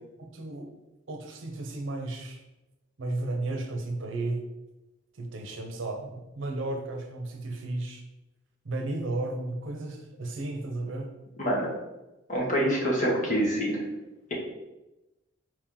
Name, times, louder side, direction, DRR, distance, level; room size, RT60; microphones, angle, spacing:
voice 1, 0.2-0.7 1.1-2.4 3.0-4.4 5.2-8.0 8.6-11.1, right 2 dB, 70° right, 4 dB, 0.6 m, -34 dB
voice 2, 11.4-11.7 12.3-13.8, equal, 40° left, -3 dB, 1.2 m, -26 dB
4.5 x 2.9 x 3.7 m, 1.0 s
head